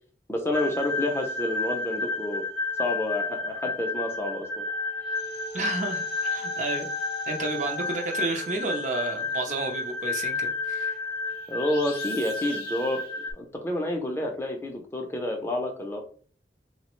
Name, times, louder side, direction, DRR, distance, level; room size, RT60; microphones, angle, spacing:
voice 1, 0.3-2.4 2.8-4.6 11.5-13.0 13.4-16.0, left 1 dB, 15° left, 3 dB, 0.4 m, -29 dB
sound 1, 0.5-13.3, left 3 dB, 50° left, 0.7 m, -31 dB
voice 2, 5.5-6.9 7.3-11.0, right 3 dB, 40° right, 3 dB, 0.5 m, -31 dB
3.1 x 2.1 x 3.0 m, 0.44 s
head